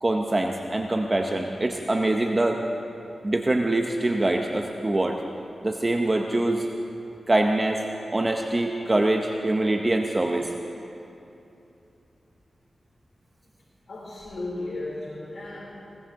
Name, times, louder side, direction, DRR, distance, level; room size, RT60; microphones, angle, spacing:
voice 1, 0.0-2.6 3.2-5.2 5.6-6.7 7.3-7.8 8.1-10.5, right 2 dB, 25° right, 2 dB, 0.7 m, -24 dB
voice 2, 13.9-15.6, left 2 dB, 65° left, -8 dB, 4.1 m, -34 dB
20.5 x 18.5 x 3.6 m, 2.9 s
wide cardioid pair, 125°, 0 cm